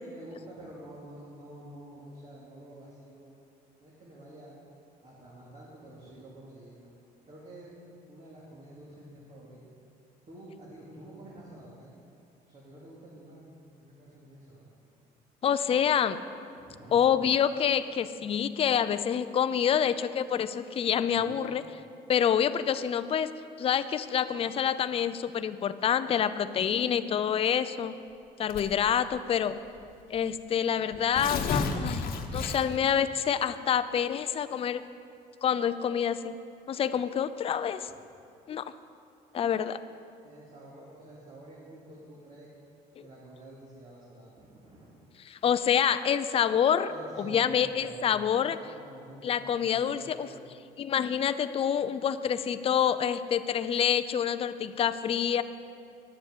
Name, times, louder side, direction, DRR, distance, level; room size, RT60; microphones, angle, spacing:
voice 1, 0.0-3.3 3.8-4.5 5.0-6.8 7.2-7.7 8.1-9.6 10.3-11.9 12.4-13.5 13.8-14.8 16.5-17.1 21.1-21.5 40.2-42.5 43.0-44.9 45.2-45.4 46.9-48.1 48.4-50.4, right 1 dB, 45° right, -6 dB, 2.5 m, -49 dB
voice 2, 15.4-16.2 16.9-21.6 22.1-23.3 23.6-27.9 28.4-29.6 30.1-32.1 32.3-34.8 35.4-36.3 36.7-37.9 38.5-38.7 39.3-39.8 45.2-46.9 47.2-48.6 49.2-50.3 50.8-55.4, left 8 dB, 35° left, 12 dB, 0.4 m, -27 dB
Tearing, 28.5-28.9 29.8-29.9 30.2-30.3 30.9-32.9, left 4 dB, 60° left, 1.1 m, -31 dB
10.0 x 7.1 x 8.1 m, 2.5 s
cardioid pair, 110°, 17 cm